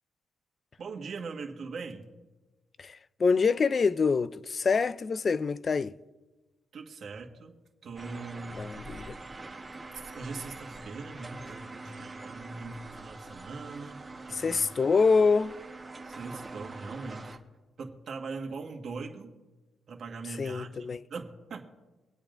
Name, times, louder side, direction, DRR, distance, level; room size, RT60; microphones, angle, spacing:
voice 1, 0.8-2.1 6.7-7.6 7.8-8.6 9.9-14.7 16.0-17.3 17.8-19.3 19.9-21.7, right 4 dB, 60° right, 1.5 m, -41 dB
voice 2, 2.8-5.9 8.5-9.1 14.3-15.6 20.4-21.0, left 4 dB, 45° left, 0.4 m, -26 dB
sound 1, 8.0-17.4, right 3 dB, 25° right, 1.3 m, -44 dB
24.5 x 8.5 x 2.6 m
cardioid pair, 75°, 0 cm